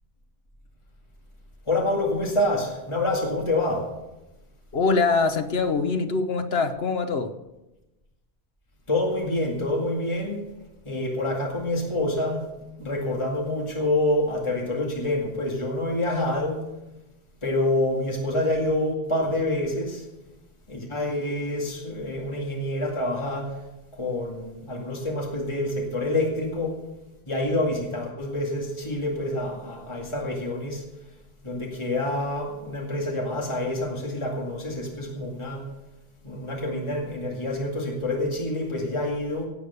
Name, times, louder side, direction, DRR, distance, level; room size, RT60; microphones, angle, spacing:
voice 1, 1.7-3.8 8.9-10.4 10.8-12.5 12.8-16.6 17.4-20.1 20.7-23.6 23.9-26.8 27.3-30.8 31.4-35.7 36.2-39.5, left 1 dB, 30° left, -1 dB, 2.2 m, -27 dB
voice 2, 4.7-7.3, left 4 dB, 70° left, 8 dB, 1.3 m, -23 dB
17.0 x 8.4 x 6.8 m, 0.99 s
omnidirectional pair, 1.1 m